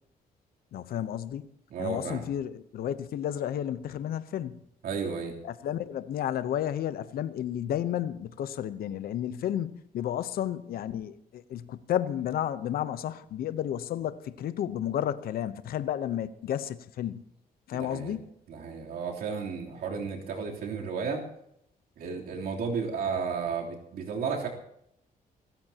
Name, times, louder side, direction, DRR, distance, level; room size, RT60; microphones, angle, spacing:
voice 1, 0.7-1.5 1.8-4.6 5.4-17.2 17.7-18.2, left 10 dB, 80° left, 0.9 m, -32 dB
voice 2, 1.7-2.2 4.8-5.3 17.7-18.2 18.5-21.3 22.0-24.5, right 5 dB, 90° right, 3.4 m, -33 dB
27.0 x 14.0 x 2.9 m
cardioid pair, 155°, 15 cm